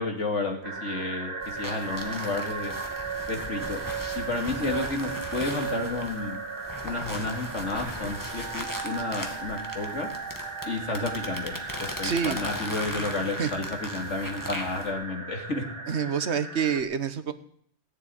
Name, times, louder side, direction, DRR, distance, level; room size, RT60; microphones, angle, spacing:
voice 1, 0.0-2.7 3.3-3.8 4.1-6.4 6.8-10.1 10.6-11.5 11.8-15.6, left 3 dB, 85° left, 3 dB, 3.0 m, -31 dB
sound 1, 0.6-16.8, right 4 dB, 45° right, 2.2 m, -36 dB
sound 2, 1.4-14.9, left 1 dB, 15° left, 1.9 m, -39 dB
voice 2, 12.0-12.4 13.4-13.5 15.9-17.3, right 7 dB, 70° right, 12 dB, 1.3 m, -27 dB
17.5 x 7.5 x 9.9 m, 0.63 s
omnidirectional pair, 1.2 m